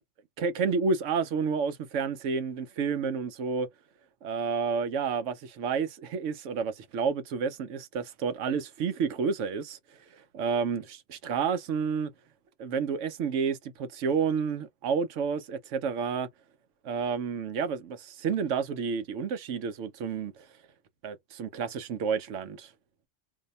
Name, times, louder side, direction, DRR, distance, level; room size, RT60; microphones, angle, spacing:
voice 1, 0.4-3.7 4.2-9.8 10.3-12.1 12.6-16.3 16.8-20.3 21.0-22.7, right 5 dB, 70° right, 1.0 m, -30 dB
2.7 x 2.1 x 3.9 m
omnidirectional pair, 1.3 m